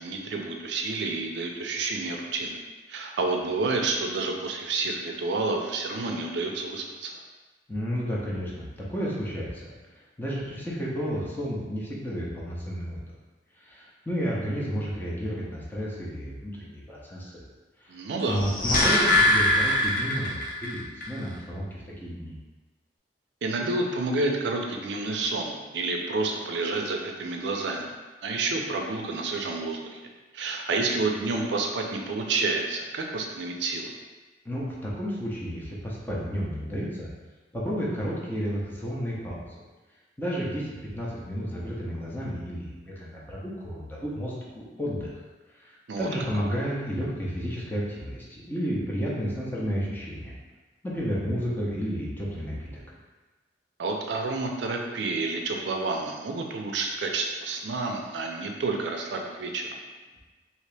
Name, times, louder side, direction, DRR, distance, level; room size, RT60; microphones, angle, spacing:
voice 1, 0.0-2.6 2.9-7.2 17.9-18.4 23.4-27.9 28.2-30.0 30.3-33.9 45.9-46.1 53.8-59.8, right 3 dB, 70° right, 2 dB, 0.4 m, -29 dB
voice 2, 7.7-13.0 13.6-17.4 17.8-18.0 18.3-21.7 22.0-22.3 34.4-37.1 37.5-39.6 40.2-40.7 40.9-45.1 45.6-50.3 50.8-52.8, equal, 10° left, -5 dB, 0.6 m, -32 dB
sound 1, 18.3-20.7 21.0-21.1, left 1 dB, 50° left, 0.6 m, -22 dB
2.8 x 2.8 x 3.3 m, 1.2 s
head